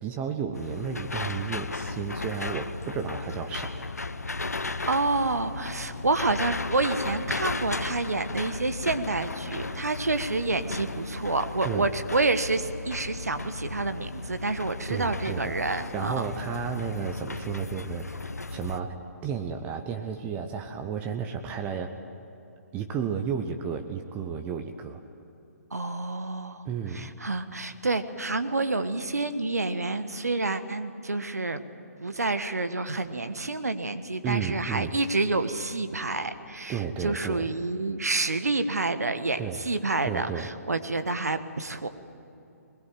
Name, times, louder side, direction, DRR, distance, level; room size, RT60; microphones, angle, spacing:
voice 1, 0.0-3.7 11.6-11.9 14.9-22.0 22.7-25.0 26.6-27.1 34.2-34.9 36.7-37.5 39.4-39.6 40.0-40.5, right 7 dB, 20° right, 5 dB, 0.9 m, -33 dB
sound 1, 0.5-18.8, left 3 dB, 75° left, 1.0 m, -35 dB
voice 2, 4.9-16.2 25.7-26.6 26.9-31.6 32.0-41.9, right 3 dB, 75° right, 9 dB, 1.5 m, -28 dB
21.5 x 21.0 x 9.2 m, 2.8 s
figure-of-eight pair, 130°, 9 cm